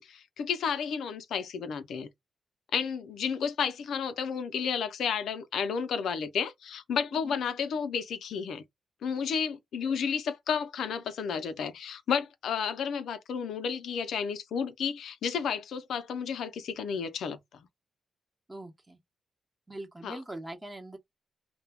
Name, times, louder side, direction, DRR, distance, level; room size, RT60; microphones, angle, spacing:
voice 1, 0.0-2.1 2.7-8.6 9.0-17.4 20.0-20.2, left 6 dB, 80° left, 0.4 m, -32 dB
voice 2, 18.5-19.0 19.7-21.0, right 1 dB, 20° right, 0.8 m, -42 dB
2.2 x 2.1 x 3.4 m
cardioid pair, 75°, 0 cm